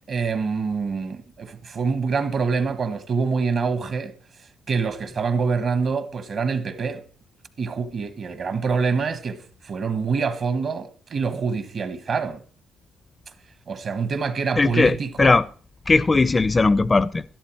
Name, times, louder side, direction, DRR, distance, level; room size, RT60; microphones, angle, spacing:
voice 1, 0.1-4.1 4.7-7.0 7.6-12.4 13.7-15.4, right 5 dB, 55° right, 1.4 m, -25 dB
voice 2, 14.6-15.4 15.9-17.2, left 3 dB, 25° left, 0.4 m, -18 dB
12.5 x 11.0 x 4.6 m
cardioid pair, 90°, 0 cm